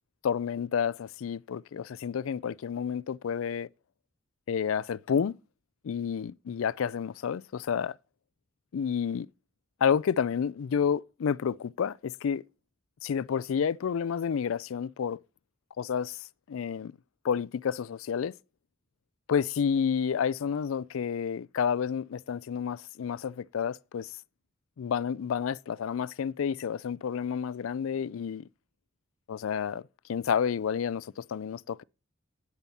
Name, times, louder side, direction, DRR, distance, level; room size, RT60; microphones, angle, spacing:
voice 1, 0.2-3.7 4.5-5.4 5.8-8.0 8.7-9.3 9.8-12.4 13.0-15.2 15.8-16.2 16.5-16.9 17.2-18.3 19.3-24.1 24.8-28.4 29.3-31.8, left 7 dB, 75° left, 0.4 m, -30 dB
9.7 x 7.1 x 4.2 m
head